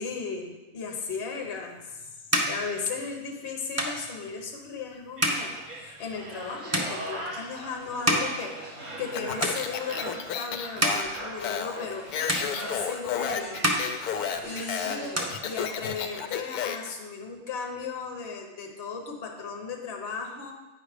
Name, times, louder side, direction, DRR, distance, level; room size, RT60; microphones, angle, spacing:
voice 1, 0.0-13.6 14.4-20.5, left 5 dB, 45° left, 1 dB, 1.1 m, -36 dB
sound 1, 1.4-9.1 9.4-10.1 10.5-12.0 12.3-13.2 13.5-14.7 14.9-16.1, right 1 dB, 20° right, 0.4 m, -31 dB
sound 2, 5.2-16.3 16.6-16.8, right 1 dB, 90° right, 2.4 m, -40 dB
Speech, 9.1-16.9, left 8 dB, 80° left, 1.1 m, -32 dB
8.8 x 4.8 x 5.0 m, 1.1 s
omnidirectional pair, 1.6 m